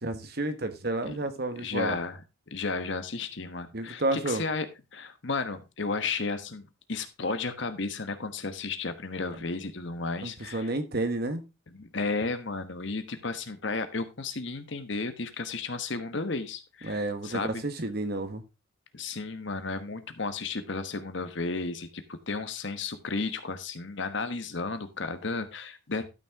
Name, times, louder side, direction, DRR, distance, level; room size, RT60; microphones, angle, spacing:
voice 1, 0.0-2.0 3.7-4.4 10.2-11.4 16.8-18.4, right 2 dB, 50° right, 1.2 m, -31 dB
voice 2, 1.6-2.2 2.5-6.6 6.9-10.7 11.7-17.6 18.9-26.1, left 3 dB, 60° left, 1.2 m, -33 dB
12.0 x 6.2 x 3.6 m
head